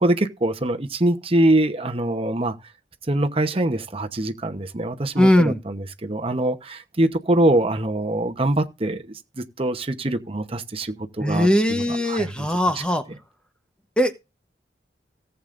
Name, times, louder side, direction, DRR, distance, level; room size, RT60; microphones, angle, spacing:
voice 1, 0.0-2.6 3.1-12.5, right 1 dB, 30° right, 1.0 m, -23 dB
voice 2, 5.2-5.6 11.2-13.0 14.0-14.1, left 1 dB, 5° left, 1.0 m, -19 dB
18.0 x 8.2 x 2.6 m
head